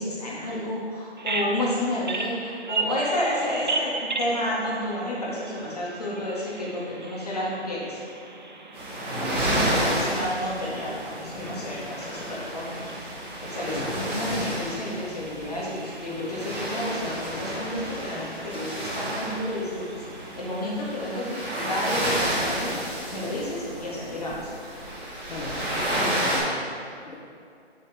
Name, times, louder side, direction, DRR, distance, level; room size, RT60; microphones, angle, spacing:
voice 1, 0.0-8.0 9.2-13.1 13.4-20.0 20.4-22.8 23.1-24.5, left 1 dB, 35° left, -5 dB, 1.9 m, -31 dB
Bird vocalization bird call bird song, 1.2-21.0, right 3 dB, 45° right, 0.7 m, -37 dB
sound 1, 8.7-26.4, right 1 dB, 10° right, 1.4 m, -31 dB
voice 2, 9.1-10.2 13.7-13.9 25.3-25.7 26.0-27.2, left 2 dB, 70° left, -4 dB, 1.5 m, -37 dB
8.6 x 7.6 x 3.4 m, 2.4 s
hypercardioid pair, 180°, 33 cm